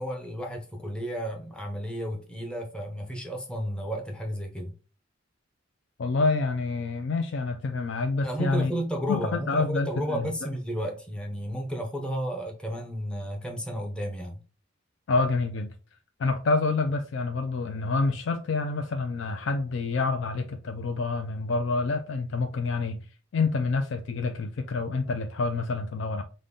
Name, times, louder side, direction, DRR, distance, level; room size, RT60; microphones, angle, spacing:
voice 1, 0.0-4.7 8.2-14.4, equal, 5° left, 0.7 m, -32 dB
voice 2, 6.0-8.7 9.1-10.3 15.1-15.7 16.2-23.0 23.3-26.2, left 3 dB, 65° left, 0.4 m, -27 dB
5.1 x 2.2 x 3.7 m
head